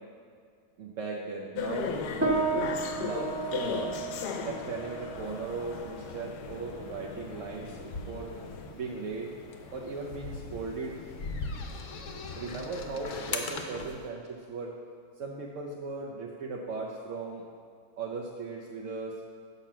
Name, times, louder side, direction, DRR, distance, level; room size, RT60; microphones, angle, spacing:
voice 1, 0.8-4.0 4.4-8.3 8.7-9.3 9.7-11.0 12.3-14.2 14.5-14.8 15.2-17.4 18.0-19.2, right 4 dB, 60° right, -2 dB, 0.9 m, -37 dB
sound 1, 1.6-8.7, left 6 dB, 75° left, 1.2 m, -37 dB
sound 2, 2.2-11.9, right 3 dB, 15° right, 0.5 m, -36 dB
sound 3, 5.1-14.0, left 4 dB, 60° left, 0.9 m, -41 dB
6.7 x 5.7 x 7.4 m, 2.1 s
omnidirectional pair, 1.8 m